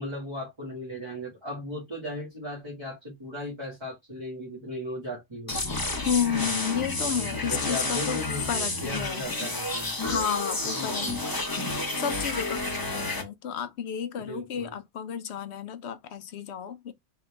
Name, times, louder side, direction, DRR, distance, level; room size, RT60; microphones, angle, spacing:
voice 1, 0.0-5.7 7.0-10.0 10.6-11.2 14.2-14.7, equal, 25° right, 1.8 m, -37 dB
sound 1, 5.5-13.2, left 2 dB, 20° left, 0.9 m, -30 dB
voice 2, 6.0-8.2 8.5-9.2 10.0-11.1 12.0-16.9, left 8 dB, 70° left, 0.9 m, -31 dB
3.9 x 3.2 x 3.3 m
omnidirectional pair, 1.2 m